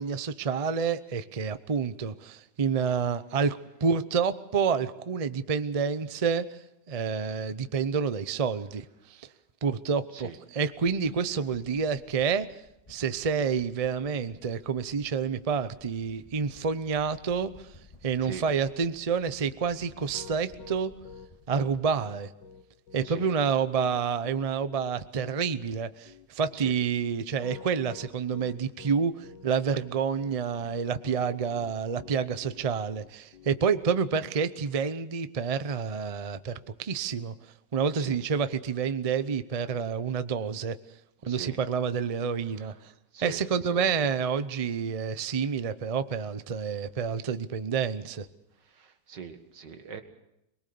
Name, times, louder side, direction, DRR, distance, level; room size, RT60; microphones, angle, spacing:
voice 1, 0.0-6.6 6.9-9.3 9.6-12.5 12.9-17.7 18.0-20.9 21.5-22.3 22.9-37.3 37.7-40.8 41.2-42.9 43.2-48.3, right 6 dB, 40° right, 12 dB, 0.5 m, -28 dB
sound 1, 10.8-22.2, left 1 dB, 20° left, 2.0 m, -56 dB
Piano, 19.8-34.0, left 6 dB, 80° left, 1.8 m, -48 dB
voice 2, 41.2-41.6 42.6-42.7 43.1-43.8 48.6-50.0, right 6 dB, 80° right, 7 dB, 2.3 m, -42 dB
23.0 x 21.0 x 6.9 m, 0.84 s
omnidirectional pair, 1.9 m